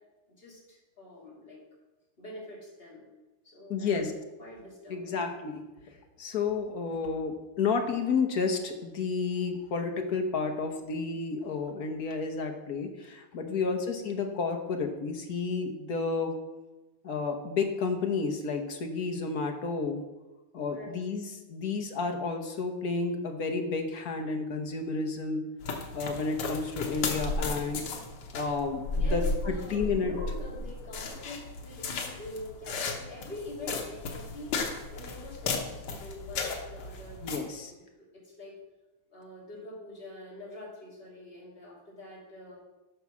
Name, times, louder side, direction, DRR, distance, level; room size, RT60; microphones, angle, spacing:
voice 1, 0.3-1.6 2.2-3.1 3.4-4.1 4.4-5.3 13.4-13.8 20.6-21.0 29.0-34.5 34.9-37.8 38.1-38.5 39.1-42.6, left 1 dB, 25° left, -5 dB, 3.2 m, -45 dB
voice 2, 3.7-4.1 4.9-5.6 6.2-16.3 17.0-20.0 20.5-25.4 25.9-27.8 28.3-30.1 37.2-37.7, left 4 dB, 55° left, 3 dB, 1.3 m, -31 dB
sound 1, 25.6-37.4, left 3 dB, 85° left, 2.1 m, -34 dB
9.4 x 5.6 x 6.1 m, 1.1 s
omnidirectional pair, 2.4 m